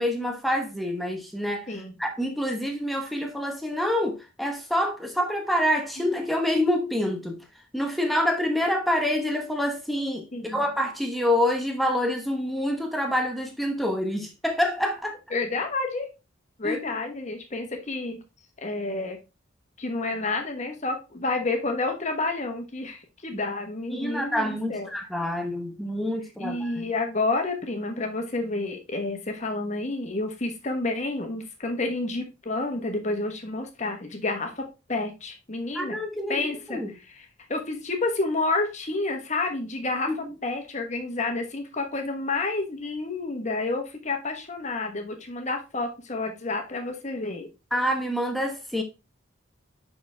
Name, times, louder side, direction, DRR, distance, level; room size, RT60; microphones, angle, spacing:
voice 1, 0.0-1.7 2.0-7.4 7.7-15.2 16.6-16.9 23.3-23.4 23.9-26.9 35.7-36.9 40.1-40.3 47.7-48.8, left 1 dB, ahead, 1.0 m, -27 dB
voice 2, 1.7-2.0 6.0-6.1 10.3-10.6 15.3-16.1 16.6-18.2 18.6-19.2 19.8-24.9 26.4-36.0 36.3-36.8 37.1-40.1 40.4-47.5, left 3 dB, 35° left, 1.2 m, -29 dB
5.9 x 5.1 x 3.3 m
head